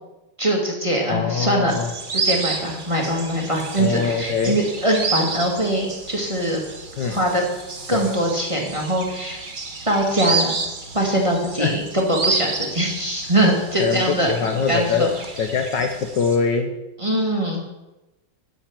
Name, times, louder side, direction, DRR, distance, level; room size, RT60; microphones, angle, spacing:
voice 1, 0.4-1.7 2.1-6.6 7.1-7.4 7.9-9.4 9.9-10.5 10.9-14.3 14.7-15.1 17.0-17.6, right 1 dB, 15° right, -1 dB, 1.9 m, -22 dB
voice 2, 1.1-1.9 3.8-4.6 7.0-7.2 7.9-8.1 11.6-11.8 13.8-15.1 15.4-16.7, left 6 dB, 65° left, 6 dB, 1.3 m, -23 dB
sound 1, 1.7-16.4, right 4 dB, 30° right, 1.0 m, -30 dB
9.3 x 7.2 x 7.5 m, 1.0 s
omnidirectional pair, 2.3 m